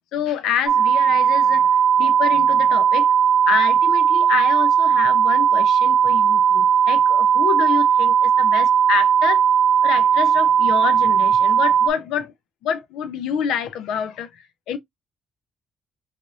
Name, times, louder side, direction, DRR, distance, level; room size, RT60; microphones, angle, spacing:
voice 1, 0.1-1.7 2.0-3.1 3.5-9.4 9.8-12.3 12.6-14.8, left 8 dB, 90° left, 0.5 m, -27 dB
sound 1, 0.7-11.9, right 8 dB, 60° right, 0.5 m, -17 dB
3.3 x 2.5 x 2.6 m
cardioid pair, 90°, 0 cm